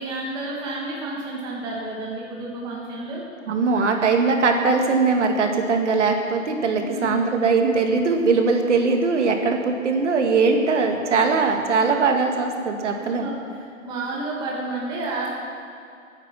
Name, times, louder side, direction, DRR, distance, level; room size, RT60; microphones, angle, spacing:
voice 1, 0.0-3.2 3.7-3.8 6.8-7.3 11.7-12.0 12.7-12.9 13.2-15.3, right 2 dB, 10° right, -4 dB, 1.5 m, -31 dB
voice 2, 3.5-13.3, right 4 dB, 60° right, 3 dB, 2.2 m, -21 dB
21.5 x 9.6 x 6.0 m, 2.5 s
hypercardioid pair, 165°, 40 cm